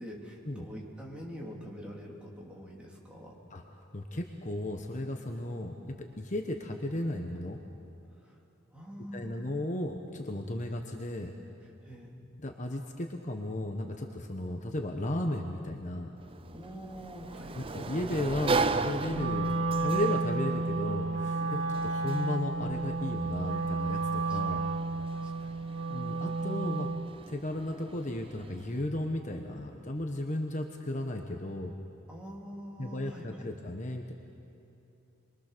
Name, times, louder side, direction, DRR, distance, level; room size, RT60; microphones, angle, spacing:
voice 1, 0.0-3.4 5.4-5.5 8.2-8.4 8.7-9.5 11.8-12.1 16.5-17.6 21.4-21.7 24.3-24.6 25.1-25.5 32.1-33.5, equal, 5° right, -3 dB, 3.6 m, -45 dB
voice 2, 3.9-7.6 9.1-11.3 12.4-16.2 17.5-24.6 25.9-26.9 27.3-31.7 32.8-34.1, left 1 dB, 40° left, 3 dB, 1.2 m, -35 dB
Sliding door, 16.2-28.8, right 3 dB, 25° right, 0.6 m, -38 dB
Wind instrument woodwind instrument, 19.1-27.1, right 3 dB, 80° right, 2.0 m, -32 dB
27.0 x 22.5 x 6.8 m, 2.7 s
head